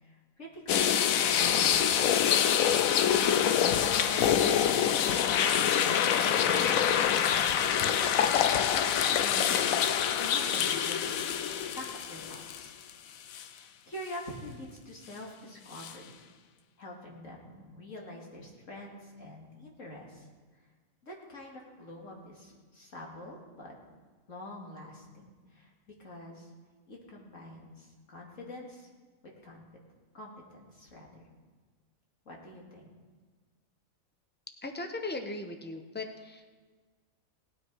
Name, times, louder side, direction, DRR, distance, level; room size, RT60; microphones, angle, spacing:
voice 1, 0.0-2.5 3.9-8.7 9.0-12.7 13.2-16.1 16.8-20.3 21.0-23.7 24.3-26.5 26.9-28.9 29.2-29.6 30.1-31.2 32.3-32.9, left 1 dB, 65° left, -2 dB, 2.6 m, -46 dB
sound 1, 0.7-12.9 13.3-13.4 15.8-15.9, left 9 dB, 85° left, 1.1 m, -26 dB
voice 2, 34.6-36.5, left 2 dB, 10° left, 5 dB, 0.7 m, -38 dB
18.5 x 9.3 x 4.7 m, 1.5 s
omnidirectional pair, 1.4 m